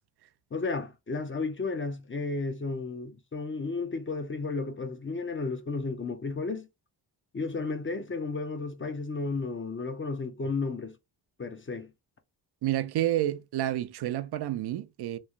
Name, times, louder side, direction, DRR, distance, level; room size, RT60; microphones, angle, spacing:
voice 1, 0.5-6.7 7.3-10.9 11.4-11.9, left 3 dB, 25° left, 0.6 m, -33 dB
voice 2, 12.6-15.2, right 13 dB, 60° right, 0.5 m, -29 dB
3.1 x 2.3 x 2.3 m
supercardioid pair, 50°, 45 cm